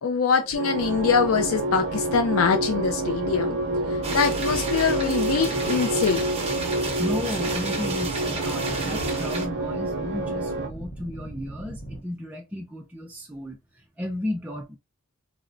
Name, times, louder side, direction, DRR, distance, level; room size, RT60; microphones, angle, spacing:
voice 1, 0.0-3.6 3.9-6.2, left 5 dB, 75° left, 0.4 m, -24 dB
sound 1, 0.5-10.7, right 2 dB, 60° right, 0.5 m, -28 dB
sound 2, 0.7-12.0, right 1 dB, 45° left, 0.8 m, -40 dB
sound 3, 4.0-9.5, right 3 dB, 30° right, 0.8 m, -32 dB
voice 2, 6.8-14.8, left 1 dB, 5° right, 0.4 m, -34 dB
4.0 x 2.1 x 2.5 m
head